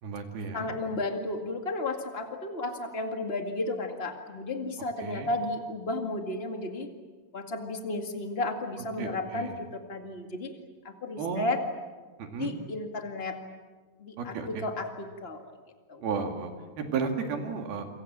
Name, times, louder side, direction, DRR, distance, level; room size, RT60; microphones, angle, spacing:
voice 1, 0.0-0.7 5.0-5.3 9.0-9.6 11.2-11.5 12.2-12.5 14.2-14.6 16.0-17.9, right 5 dB, 65° right, 4 dB, 4.1 m, -33 dB
voice 2, 0.5-6.9 7.3-10.5 10.8-11.6 12.4-13.4 14.0-15.5 15.9-16.0, left 2 dB, 55° left, 4 dB, 0.6 m, -33 dB
28.5 x 25.0 x 7.5 m, 1.4 s
omnidirectional pair, 4.9 m